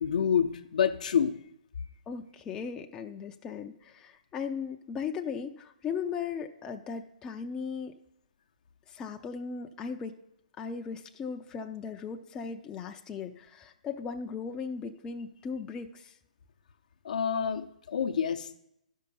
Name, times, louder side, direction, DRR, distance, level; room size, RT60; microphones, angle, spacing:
voice 1, 0.0-1.4 17.0-18.6, left 7 dB, 65° left, 6 dB, 0.7 m, -28 dB
voice 2, 2.1-7.9 8.9-10.2 10.6-16.1, left 6 dB, 15° left, 4 dB, 0.4 m, -37 dB
12.0 x 5.5 x 5.4 m, 0.81 s
hypercardioid pair, 135°, 4 cm